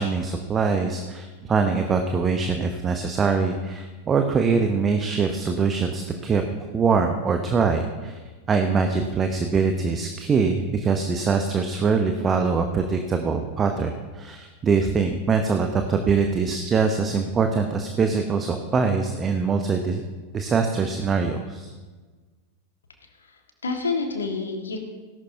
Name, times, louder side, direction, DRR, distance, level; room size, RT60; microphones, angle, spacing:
voice 1, 0.0-6.4 6.7-8.2 8.5-20.0 20.3-21.7, right 5 dB, 20° right, 6 dB, 0.9 m, -23 dB
voice 2, 23.2-24.8, left 4 dB, 70° left, 3 dB, 1.8 m, -29 dB
17.5 x 11.5 x 2.8 m, 1.4 s
figure-of-eight pair, 90°, 0 cm